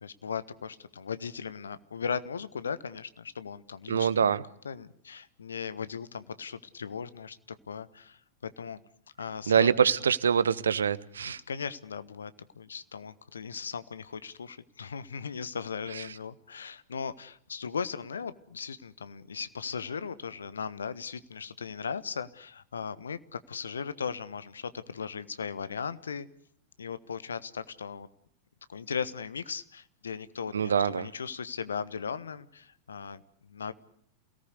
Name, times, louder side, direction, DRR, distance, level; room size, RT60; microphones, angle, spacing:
voice 1, 0.0-4.3 4.6-7.4 7.7-8.8 9.2-9.7 11.3-26.3 26.8-28.1 28.7-33.7, left 6 dB, 70° left, 1.3 m, -37 dB
voice 2, 3.9-4.4 9.5-11.4 30.5-31.1, right 7 dB, 70° right, 1.0 m, -24 dB
28.5 x 18.0 x 8.2 m
figure-of-eight pair, 90°, 0 cm